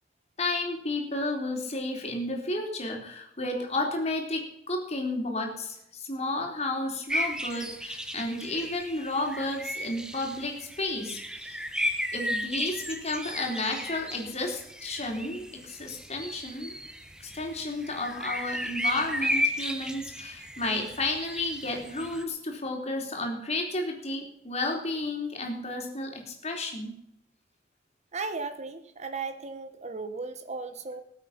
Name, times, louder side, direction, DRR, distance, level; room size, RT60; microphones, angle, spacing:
voice 1, 0.4-11.6 12.1-16.7 17.2-26.9, left 2 dB, 35° left, 1 dB, 3.8 m, -32 dB
sound 1, 7.1-22.2, equal, 5° right, 1.2 m, -34 dB
voice 2, 28.1-31.0, right 4 dB, 40° right, 10 dB, 0.9 m, -36 dB
19.5 x 8.1 x 5.8 m, 0.76 s
head